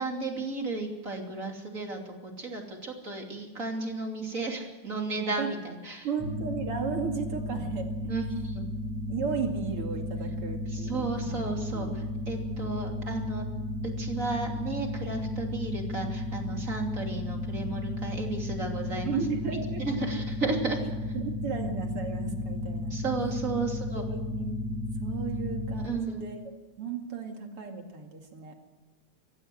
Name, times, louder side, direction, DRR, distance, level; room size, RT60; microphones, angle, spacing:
voice 1, 0.0-6.1 8.1-8.7 10.7-13.5 14.0-19.2 19.8-20.8 22.9-24.0 25.7-26.2, right 3 dB, 25° right, 2 dB, 3.0 m, -34 dB
voice 2, 6.0-7.9 9.1-11.9 12.6-12.8 19.0-19.8 21.1-23.0 23.5-23.7 23.9-24.6 25.0-26.4 26.8-28.5, right 6 dB, 50° right, 3 dB, 3.1 m, -35 dB
sound 1, 6.2-25.9, left 1 dB, 75° right, 7.5 m, -34 dB
24.5 x 15.5 x 7.9 m, 1.1 s
omnidirectional pair, 3.5 m